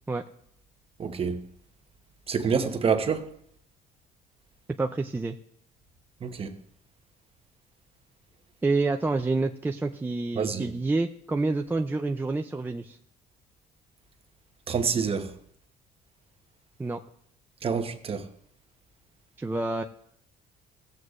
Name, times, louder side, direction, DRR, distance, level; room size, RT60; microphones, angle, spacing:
voice 1, 1.0-1.4 2.3-3.3 6.2-6.5 10.4-10.7 14.7-15.3 17.6-18.2, right 6 dB, 35° right, 1.0 m, -27 dB
voice 2, 4.8-5.4 8.6-13.0 16.8-17.0 19.4-19.8, right 3 dB, 10° right, 0.4 m, -28 dB
16.0 x 7.9 x 2.5 m
cardioid pair, 110°, 17 cm